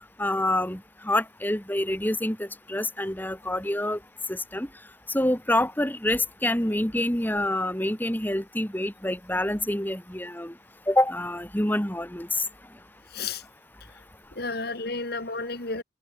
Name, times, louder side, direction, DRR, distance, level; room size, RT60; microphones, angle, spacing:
voice 1, 0.2-4.0 4.3-4.7 5.1-10.5 10.9-12.4, left 1 dB, 10° left, 2.4 m, -27 dB
voice 2, 13.1-13.4 14.4-15.8, left 3 dB, 55° left, 2.5 m, -32 dB
head